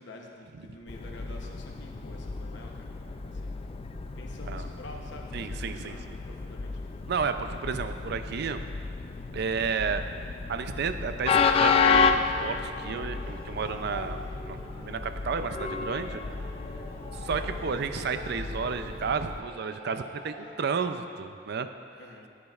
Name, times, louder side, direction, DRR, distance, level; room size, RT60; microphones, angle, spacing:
voice 1, 0.0-2.9 3.2-3.6 4.2-6.7 22.0-22.3, left 1 dB, 65° left, 1 dB, 0.9 m, -48 dB
Train, 0.9-19.4, left 5 dB, 30° left, 0.3 m, -31 dB
voice 2, 5.3-6.0 7.1-8.6 9.3-10.0 10.5-14.2 14.5-16.2 17.1-21.7, right 5 dB, 60° right, 9 dB, 0.5 m, -32 dB
sound 1, 10.9-20.5, left 1 dB, 50° left, 1.9 m, -47 dB
14.5 x 8.5 x 2.4 m, 2.2 s
head